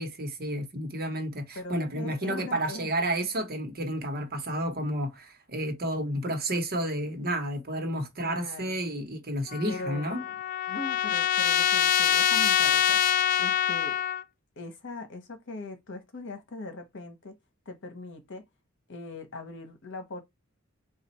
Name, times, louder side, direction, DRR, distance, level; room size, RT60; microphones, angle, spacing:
voice 1, 0.0-10.2, right 1 dB, 45° right, 1.1 m, -31 dB
voice 2, 1.5-2.9 8.2-8.8 9.7-10.3 10.7-13.0 13.4-14.0 14.6-17.3 17.7-18.4 18.9-20.2, left 2 dB, 60° left, 1.1 m, -40 dB
Trumpet, 9.5-14.2, left 10 dB, 40° left, 0.3 m, -25 dB
4.1 x 2.4 x 4.2 m
head